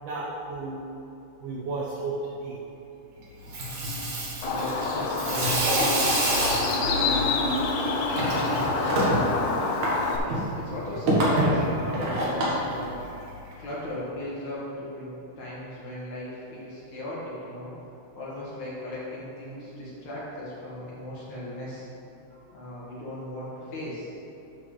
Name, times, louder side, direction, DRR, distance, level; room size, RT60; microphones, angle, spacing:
voice 1, 0.0-0.9 1.4-2.6 19.6-19.9 22.3-22.4 24.5-24.6, right 3 dB, 80° right, -7 dB, 1.8 m, -34 dB
Water tap faucet / Sink (filling or washing), 3.3-13.5, right 1 dB, 60° right, 2.3 m, -27 dB
Bird, 4.4-10.2, left 4 dB, 90° left, 3.0 m, -28 dB
voice 2, 4.5-7.4 8.2-9.2 10.2-12.9 13.6-17.7 18.1-21.9 22.5-24.1, left 1 dB, 55° left, -8 dB, 2.2 m, -37 dB
12.0 x 6.0 x 3.3 m, 2.9 s
omnidirectional pair, 5.0 m